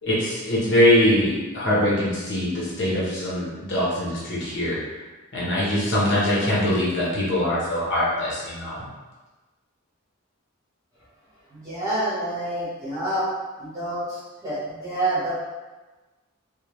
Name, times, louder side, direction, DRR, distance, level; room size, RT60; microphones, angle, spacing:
voice 1, 0.0-4.8 5.3-8.9, left 1 dB, 55° left, -7 dB, 1.0 m, -22 dB
voice 2, 11.5-13.3 13.6-15.3, right 1 dB, 15° right, -11 dB, 1.2 m, -28 dB
3.4 x 2.2 x 3.1 m, 1.2 s
head